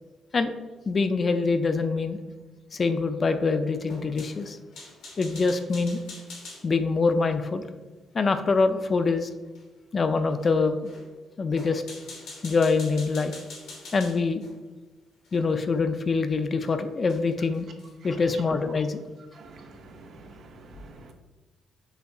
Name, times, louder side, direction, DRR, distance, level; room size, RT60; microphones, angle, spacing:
voice 1, 0.9-2.2 2.7-4.6 5.2-6.0 6.6-7.6 8.1-9.3 9.9-10.9 11.4-11.8 12.4-13.4 13.9-14.4 15.3-17.7 18.0-19.0, left 4 dB, 40° left, 9 dB, 0.3 m, -24 dB
sound 1, 3.8-6.7 9.5-9.6 10.4-10.5 10.8-11.1 11.5-14.5 15.2-15.4 16.6-16.7 17.1-17.2 17.5-18.0, left 2 dB, 85° left, 1.2 m, -44 dB
voice 2, 19.4-21.1, right 2 dB, 60° right, 4 dB, 0.5 m, -48 dB
6.2 x 2.4 x 2.3 m, 1.2 s
cardioid pair, 90°, 0 cm